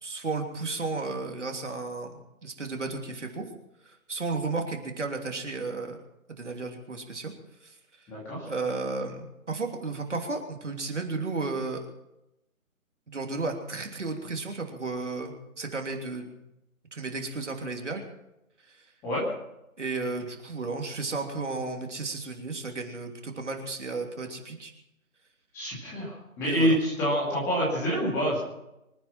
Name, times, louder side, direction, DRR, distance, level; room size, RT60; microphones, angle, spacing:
voice 1, 0.0-2.1 2.4-3.5 3.8-6.0 6.3-7.3 7.6-7.7 8.5-11.9 13.1-16.4 16.9-18.0 18.7-18.8 19.8-24.7 26.4-26.8, right 3 dB, 55° right, 3 dB, 3.1 m, -33 dB
voice 2, 8.1-8.5 19.0-19.2 25.5-26.1 26.4-28.4, equal, 5° left, -6 dB, 2.4 m, -26 dB
25.0 x 9.4 x 5.9 m, 0.89 s
figure-of-eight pair, 160°, 43 cm